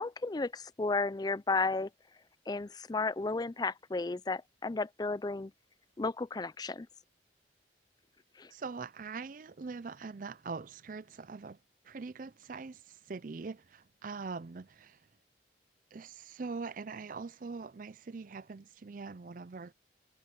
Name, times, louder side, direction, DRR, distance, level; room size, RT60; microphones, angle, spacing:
voice 1, 0.0-1.9 2.5-5.5 6.0-6.9 8.4-8.5, left 3 dB, 20° left, 0.4 m, -33 dB
voice 2, 8.5-11.6 11.8-15.0 15.9-19.7, right 4 dB, 45° right, 0.5 m, -43 dB
head